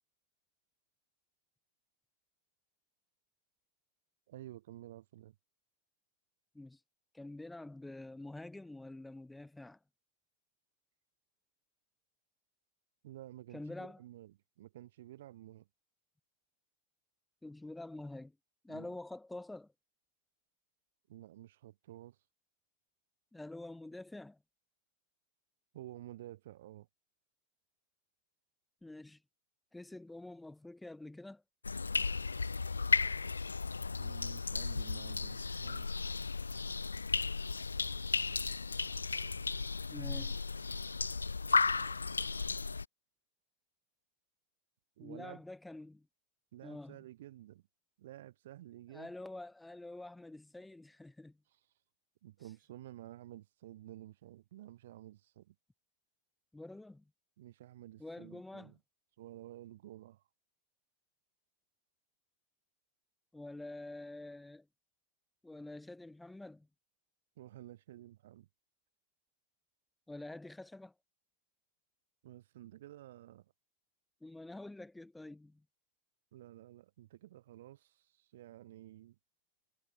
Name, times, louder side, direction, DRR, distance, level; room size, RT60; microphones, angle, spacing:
voice 1, 4.3-5.4 13.0-15.7 18.7-19.0 21.1-22.2 25.7-26.9 34.0-35.9 45.0-45.4 46.5-47.6 48.0-49.1 51.5-51.6 52.2-55.5 57.4-58.8 59.2-60.2 67.4-68.5 72.2-73.5 76.3-79.2, right 14 dB, 55° right, 4.1 m, -52 dB
voice 2, 7.1-9.8 13.5-14.0 17.4-18.3 18.6-19.7 23.3-24.4 28.8-29.2 29.7-31.4 39.9-40.4 45.0-46.1 46.6-47.0 48.9-51.4 56.5-57.0 58.0-58.7 63.3-64.6 65.4-66.7 70.1-70.9 74.2-75.6, left 2 dB, 5° left, 4.9 m, -47 dB
sound 1, 31.6-42.9, left 4 dB, 75° left, 0.4 m, -34 dB
figure-of-eight pair, 90°, 0 cm